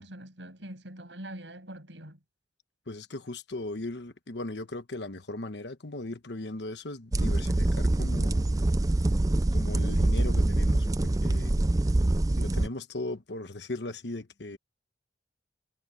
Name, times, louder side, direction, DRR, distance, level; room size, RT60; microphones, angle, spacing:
voice 1, 0.0-2.2, right 1 dB, 85° right, 7.7 m, -43 dB
voice 2, 2.9-8.5 9.5-11.5 12.4-14.6, left 2 dB, 70° left, 1.2 m, -38 dB
sound 1, 7.1-12.7, right 1 dB, 20° right, 0.5 m, -25 dB
head